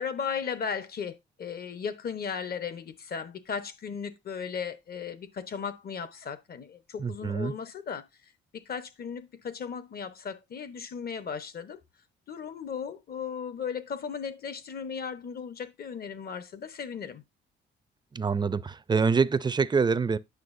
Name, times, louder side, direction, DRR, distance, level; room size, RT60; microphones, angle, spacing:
voice 1, 0.0-8.0 8.5-11.8 12.3-17.2, left 6 dB, 50° left, 1.1 m, -36 dB
voice 2, 7.0-7.5 18.1-20.2, right 5 dB, 20° right, 0.5 m, -25 dB
9.5 x 6.4 x 2.6 m
cardioid pair, 90°, 20 cm